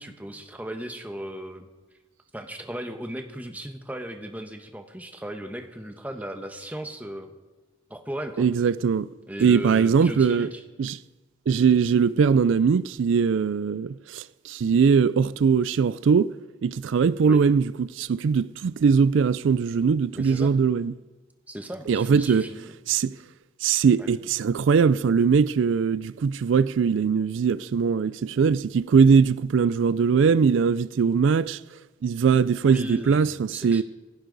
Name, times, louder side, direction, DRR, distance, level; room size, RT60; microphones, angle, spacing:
voice 1, 0.0-1.7 2.3-7.3 7.9-8.5 9.3-10.6 17.2-17.4 20.1-20.6 21.5-22.7 24.0-24.1 32.6-33.8, right 1 dB, 10° right, 1.1 m, -36 dB
voice 2, 8.4-9.1 9.4-10.5 10.8-11.0 11.5-16.3 16.6-20.9 21.9-22.5 22.9-23.2 23.6-31.6 32.0-33.8, right 6 dB, 70° right, 0.4 m, -21 dB
26.5 x 11.0 x 4.0 m
head